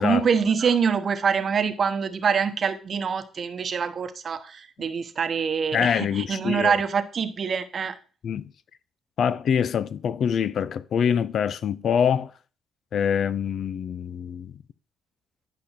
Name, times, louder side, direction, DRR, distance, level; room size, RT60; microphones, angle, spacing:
voice 1, 0.0-7.9, right 6 dB, 50° right, 1.0 m, -25 dB
voice 2, 5.7-6.7 8.2-8.5 9.2-12.3 12.9-14.6, left 7 dB, 60° left, 0.5 m, -25 dB
11.0 x 5.3 x 4.4 m
cardioid pair, 90°, 0 cm